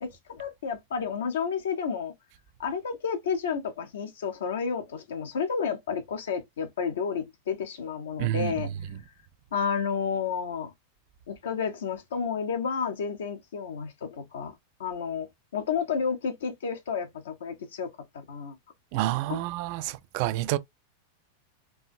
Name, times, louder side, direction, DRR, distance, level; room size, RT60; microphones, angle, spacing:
voice 1, 0.0-2.1 2.6-8.7 9.5-10.7 11.3-14.5 14.8-15.3 15.5-17.9 18.3-18.5 19.3-19.4, left 6 dB, 60° left, 0.8 m, -31 dB
voice 2, 8.2-8.5 18.9-20.6, right 15 dB, 45° right, 0.3 m, -28 dB
4.6 x 2.6 x 2.6 m
figure-of-eight pair, 90°, 0 cm